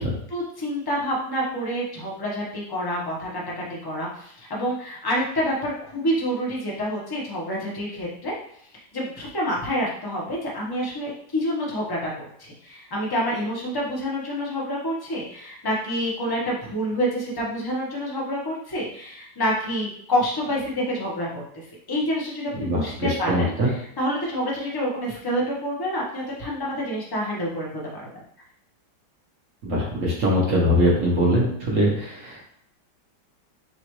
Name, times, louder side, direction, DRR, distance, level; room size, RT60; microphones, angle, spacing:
voice 1, 0.3-8.3 8.9-12.1 12.4-23.5 24.0-28.1, equal, 15° left, -4 dB, 0.8 m, -28 dB
voice 2, 22.5-23.7 29.6-32.4, equal, 50° right, -4 dB, 1.2 m, -22 dB
6.8 x 2.5 x 3.1 m, 0.68 s
omnidirectional pair, 2.0 m